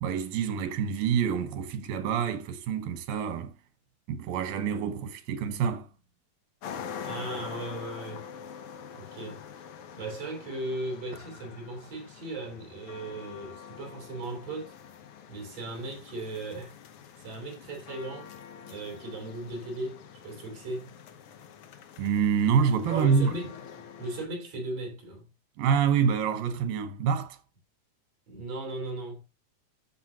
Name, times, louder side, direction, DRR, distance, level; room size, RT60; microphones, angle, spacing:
voice 1, 0.0-3.5 4.1-5.9 22.0-23.4 25.6-27.4, right 7 dB, 85° right, 2.9 m, -27 dB
sound 1, 6.6-24.3, left 7 dB, 75° left, 1.3 m, -45 dB
voice 2, 7.0-8.2 8.9-9.5 10.0-14.7 15.3-16.7 17.2-18.3 18.6-20.0 20.2-20.9 22.9-25.3 28.3-29.2, right 2 dB, 50° right, 4.6 m, -37 dB
13.5 x 6.2 x 2.9 m
omnidirectional pair, 3.9 m